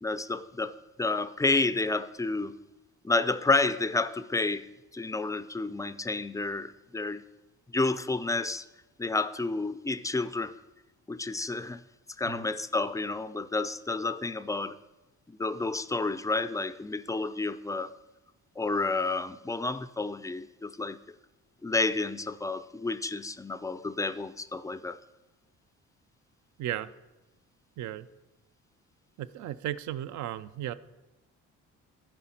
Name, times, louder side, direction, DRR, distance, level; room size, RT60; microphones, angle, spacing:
voice 1, 0.0-2.5 3.0-4.7 4.9-7.2 7.7-8.7 9.0-10.5 11.1-11.8 12.2-14.8 15.3-17.9 18.6-21.0 21.6-25.0, left 3 dB, 10° left, 14 dB, 0.3 m, -30 dB
voice 2, 26.6-26.9 27.8-28.1 29.2-30.7, right 12 dB, 70° right, 15 dB, 0.5 m, -35 dB
13.5 x 5.0 x 4.3 m, 1.1 s
cardioid pair, 90°, 30 cm